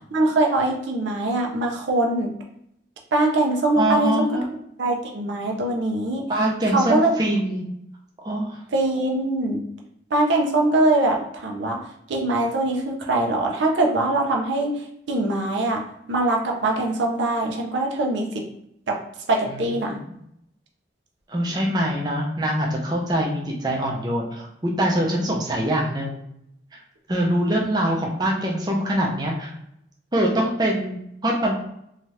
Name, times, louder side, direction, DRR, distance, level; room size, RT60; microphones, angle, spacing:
voice 1, 0.1-2.3 3.1-4.3 4.8-6.3 6.7-7.1 8.7-9.6 10.1-11.8 12.1-14.7 15.1-15.8 16.1-18.5 18.9-19.0 19.3-20.0, right 2 dB, 75° right, 1 dB, 0.5 m, -22 dB
voice 2, 3.7-4.5 6.3-7.6 8.2-8.6 19.5-19.7 21.3-26.2 26.7-26.8 27.1-29.5 30.1-31.6, right 1 dB, 20° right, -2 dB, 0.5 m, -24 dB
2.7 x 2.3 x 3.1 m, 0.77 s
head